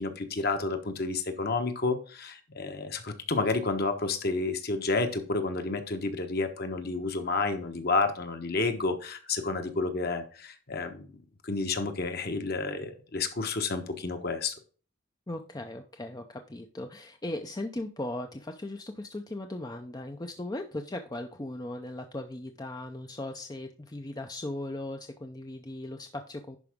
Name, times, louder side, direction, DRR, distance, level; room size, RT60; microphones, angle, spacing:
voice 1, 0.0-11.2 11.4-14.5, left 3 dB, 45° left, 6 dB, 1.2 m, -30 dB
voice 2, 15.3-26.6, left 1 dB, 20° left, 5 dB, 0.5 m, -38 dB
11.0 x 4.8 x 3.6 m, 0.39 s
head